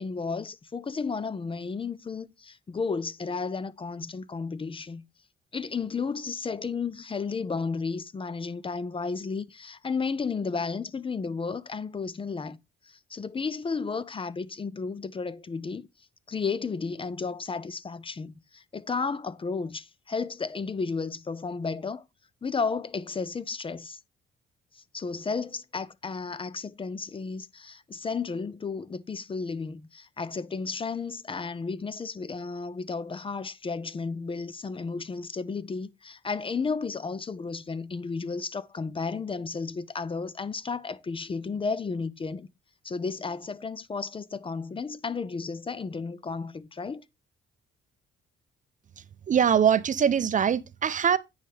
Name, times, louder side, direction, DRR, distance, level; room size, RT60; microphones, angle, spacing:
voice 1, 0.0-5.0 5.5-12.6 12.8-15.9 16.3-22.0 22.4-24.0 24.7-42.5 42.8-47.0, left 4 dB, 25° left, 0.5 m, -33 dB
voice 2, 49.0-51.2, right 8 dB, 40° right, 0.5 m, -23 dB
9.2 x 5.5 x 3.3 m
cardioid pair, 90°, 20 cm